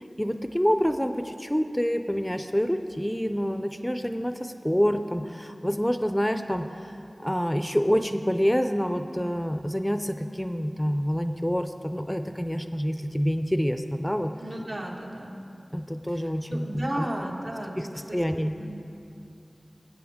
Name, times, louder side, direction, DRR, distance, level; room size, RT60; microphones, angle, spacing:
voice 1, 0.0-14.3 15.7-17.1 17.8-18.6, equal, 5° left, 8 dB, 0.4 m, -27 dB
voice 2, 14.4-15.4 16.1-17.7 18.1-18.2 18.6-18.8, right 1 dB, 70° right, -2 dB, 1.6 m, -34 dB
19.0 x 8.4 x 3.6 m, 2.6 s
wide cardioid pair, 50°, 0 cm